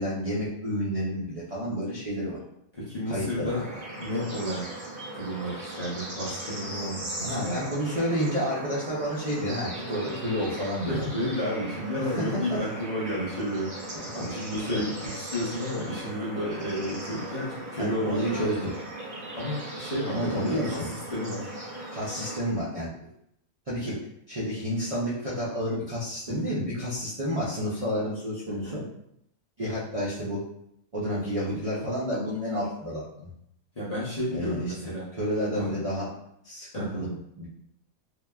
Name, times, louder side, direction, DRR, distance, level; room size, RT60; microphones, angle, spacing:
voice 1, 0.0-2.4 3.1-3.6 7.2-11.2 12.0-12.6 14.6-14.8 17.8-18.7 20.1-20.9 21.9-22.9 23.7-24.0 24.3-28.8 29.6-30.4 30.9-33.3 34.3-34.7 35.1-36.1 36.4-37.1 37.4-37.5, equal, 70° right, -7 dB, 0.3 m, -30 dB
voice 2, 2.8-3.7 4.0-7.6 10.8-18.5 19.3-20.8 21.1-21.5 26.3-26.6 28.5-28.8 33.7-35.1 35.5-35.7 36.7-37.2, equal, 45° left, -8 dB, 0.5 m, -32 dB
Bird / Insect / Frog, 3.5-22.4, right 1 dB, 85° right, 1.5 m, -38 dB
2.9 x 2.1 x 2.2 m, 0.75 s
omnidirectional pair, 1.4 m